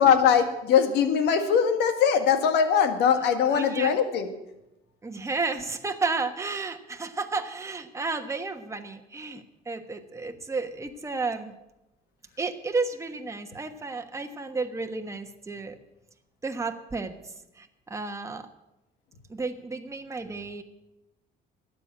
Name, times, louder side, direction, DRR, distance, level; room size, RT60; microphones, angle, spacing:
voice 1, 0.0-4.3, left 7 dB, 85° left, 8 dB, 1.7 m, -21 dB
voice 2, 3.2-4.0 5.0-11.5 12.4-15.7 16.4-17.1 17.6-18.5 19.3-20.6, right 3 dB, 15° right, 5 dB, 1.2 m, -32 dB
12.5 x 8.8 x 8.7 m, 0.93 s
cardioid pair, 110°, 17 cm